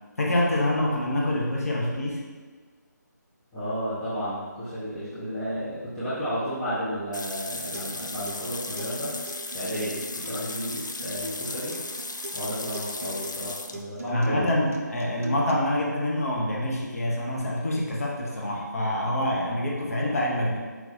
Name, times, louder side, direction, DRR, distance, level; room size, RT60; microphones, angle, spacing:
voice 1, 0.2-2.2 14.1-20.6, left 1 dB, 50° left, -3 dB, 0.8 m, -26 dB
voice 2, 3.5-9.1 9.5-11.7 12.3-14.5 19.5-19.6, equal, 5° left, -14 dB, 0.4 m, -32 dB
sound 1, 7.1-13.8, left 3 dB, 80° left, 0.4 m, -36 dB
Acoustic guitar, 7.5-15.5, right 1 dB, 50° right, 0.5 m, -41 dB
4.6 x 3.8 x 2.8 m, 1.5 s
figure-of-eight pair, 155°, 10 cm